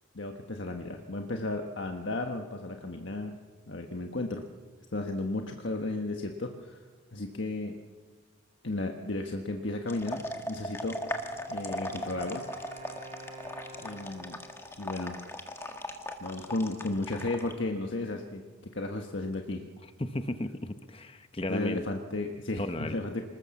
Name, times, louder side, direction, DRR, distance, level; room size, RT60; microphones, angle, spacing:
voice 1, 0.1-3.3 3.7-4.4 4.9-6.8 7.1-7.8 8.6-11.0 11.5-12.4 13.8-14.4 14.8-15.2 16.2-18.4 18.7-19.6 21.5-23.2, left 2 dB, 65° left, 3 dB, 1.4 m, -34 dB
sound 1, 9.9-17.5, left 1 dB, 10° left, 1.7 m, -38 dB
Wind instrument woodwind instrument, 10.9-14.8, right 2 dB, 35° right, 4.4 m, -49 dB
voice 2, 20.0-21.8 22.6-23.0, left 1 dB, 30° left, 9 dB, 0.9 m, -34 dB
26.0 x 20.5 x 7.2 m, 1.5 s
head